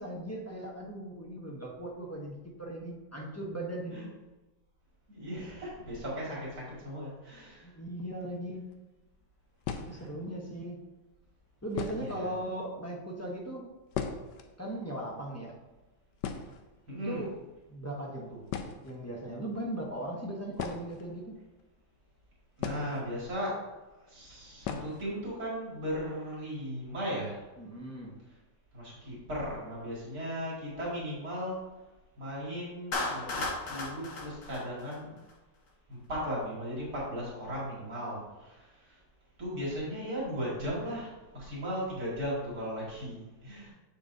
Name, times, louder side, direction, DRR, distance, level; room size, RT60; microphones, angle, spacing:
voice 1, 0.0-4.1 7.6-8.6 9.8-10.8 11.6-13.7 14.6-15.5 17.0-17.3 17.7-18.4 18.8-21.4 27.6-28.1, right 1 dB, 20° left, -3 dB, 0.4 m, -38 dB
voice 2, 5.1-7.7 9.9-10.0 11.9-12.3 16.9-17.2 22.6-23.6 24.0-27.4 28.7-31.6 32.2-35.1 35.9-39.0 39.4-43.7, equal, 60° right, -6 dB, 2.6 m, -37 dB
sound 1, 8.6-8.7 9.6-10.3 11.1-11.2 11.7-12.3 12.6-12.7 12.9-13.1 13.4-14.5 14.8-14.9 15.2-15.4 15.8-15.9 16.2-17.1 18.0-18.1 18.5-19.0 20.5-21.6 22.6-23.4 23.7-23.8 24.6-25.1 25.4-25.5 25.9-26.0 26.4-26.7, left 7 dB, 85° left, 1.2 m, -38 dB
Clapping, 32.9-35.3, left 2 dB, 65° left, 1.6 m, -35 dB
7.0 x 6.9 x 2.7 m, 1.1 s
omnidirectional pair, 1.8 m